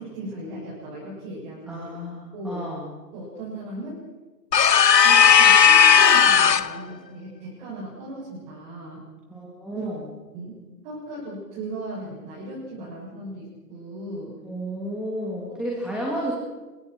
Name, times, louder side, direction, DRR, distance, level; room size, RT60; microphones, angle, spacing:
voice 1, 0.0-1.9 2.3-2.6 3.1-4.0 5.0-9.0 9.7-9.9 10.3-14.3 15.5-15.6, right 2 dB, 30° right, -7 dB, 7.5 m, -37 dB
voice 2, 1.7-2.9 9.3-10.1 14.4-16.3, equal, ahead, -4 dB, 2.7 m, -32 dB
sound 1, 4.5-6.8, left 7 dB, 85° left, 0.9 m, -15 dB
29.0 x 23.0 x 4.6 m, 1.3 s
figure-of-eight pair, 140°, 48 cm